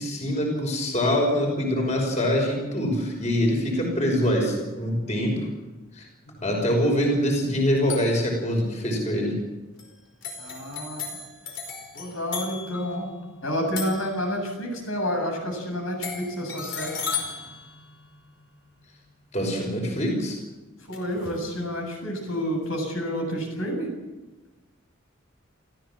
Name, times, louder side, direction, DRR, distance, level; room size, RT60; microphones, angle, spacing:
voice 1, 0.0-5.5 5.9-6.1 6.4-9.3 19.3-20.4, equal, 35° left, 1 dB, 5.8 m, -24 dB
sound 1, 7.9-8.3 9.8-9.9 10.2-14.7 16.0-18.6 20.9-21.5, left 5 dB, 60° left, 5.1 m, -36 dB
voice 2, 10.4-11.1 11.9-13.1 13.4-17.0 20.9-23.9, equal, 80° left, 2 dB, 7.7 m, -29 dB
30.0 x 15.0 x 7.7 m, 1.1 s
head